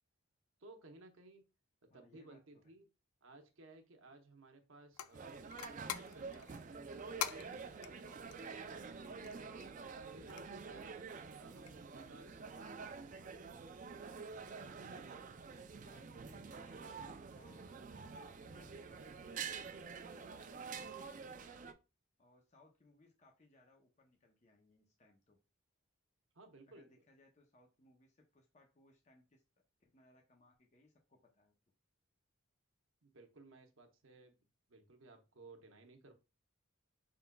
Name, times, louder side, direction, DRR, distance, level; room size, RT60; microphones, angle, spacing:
voice 1, 0.6-1.5 1.9-2.9 3.2-5.5 5.9-9.7 10.1-11.0 11.4-13.5 26.3-27.0 33.0-34.4 34.7-36.1, right 2 dB, 65° right, 5 dB, 0.8 m, -59 dB
voice 2, 1.9-2.7 9.0-9.2 15.8-16.9 17.3-17.8 18.1-21.7 22.2-25.4 26.7-29.4 29.8-31.5, left 2 dB, 30° left, 1 dB, 0.6 m, -67 dB
sound 1, 4.9-12.1, left 10 dB, 90° left, 0.4 m, -48 dB
sound 2, 5.1-21.7, right 5 dB, 35° right, 0.3 m, -48 dB
5.4 x 3.8 x 2.2 m, 0.29 s
head